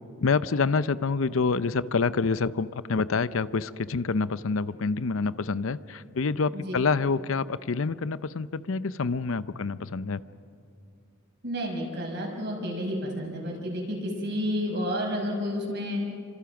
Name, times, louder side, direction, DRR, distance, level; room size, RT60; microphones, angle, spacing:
voice 1, 0.2-10.2, left 4 dB, 75° left, 16 dB, 0.6 m, -27 dB
voice 2, 11.4-16.0, equal, 60° right, 0 dB, 6.0 m, -30 dB
29.0 x 25.5 x 6.0 m, 2.4 s
head